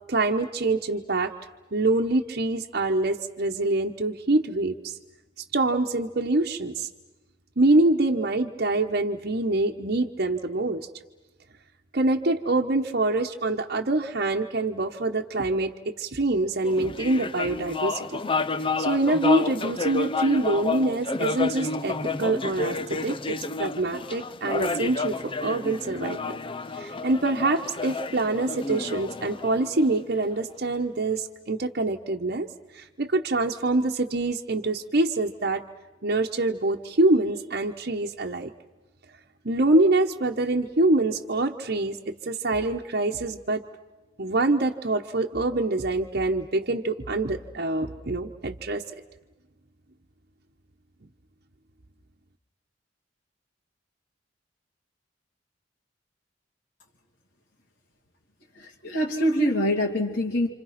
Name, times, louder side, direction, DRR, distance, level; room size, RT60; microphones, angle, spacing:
voice 1, 0.1-1.3 1.7-5.0 5.5-6.9 7.6-10.9 11.9-18.2 18.8-26.4 26.8-32.5 32.7-35.6 36.0-38.5 39.4-43.7 44.2-48.8, right 2 dB, 55° right, 2 dB, 1.1 m, -25 dB
sound 1, 16.6-30.3, left 3 dB, 30° left, 0.8 m, -30 dB
voice 2, 58.5-60.5, equal, 70° left, -2 dB, 3.0 m, -25 dB
29.0 x 27.0 x 5.9 m, 1.1 s
head